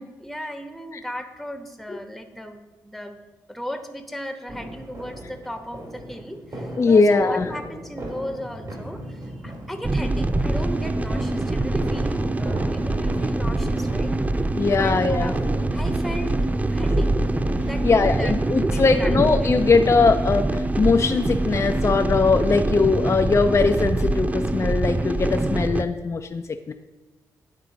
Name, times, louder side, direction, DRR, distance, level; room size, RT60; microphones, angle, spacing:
voice 1, 0.2-3.2 3.5-14.2 14.7-16.3 16.7-17.1 17.6-19.5, equal, ahead, 6 dB, 0.9 m, -36 dB
sound 1, 4.5-18.4, right 1 dB, 50° right, 2.2 m, -38 dB
voice 2, 6.8-7.5 14.6-15.3 17.8-26.7, left 4 dB, 35° left, 6 dB, 0.5 m, -20 dB
sound 2, 9.8-25.8, right 2 dB, 20° right, 0.4 m, -24 dB
9.5 x 3.7 x 5.1 m, 1.2 s
hypercardioid pair, 45°, 8 cm